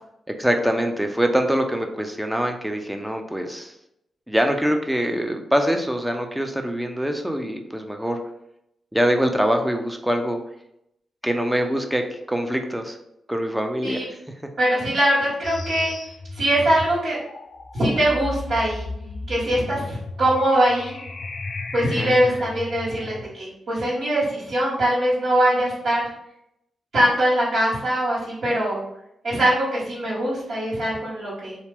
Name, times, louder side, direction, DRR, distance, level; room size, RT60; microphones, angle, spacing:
voice 1, 0.3-3.7 4.3-8.2 8.9-10.4 11.2-12.0 12.3-13.0 13.3-14.2 22.0-22.2, equal, 5° right, 4 dB, 0.6 m, -24 dB
voice 2, 14.6-15.9 16.3-17.2 17.7-18.9 19.3-21.0 21.7-26.0 26.9-28.8 29.2-31.6, right 1 dB, 65° right, -11 dB, 1.4 m, -22 dB
sound 1, 15.4-23.3, left 3 dB, 55° left, 0.4 m, -34 dB
2.8 x 2.1 x 3.4 m, 0.80 s
supercardioid pair, 40°, 0 cm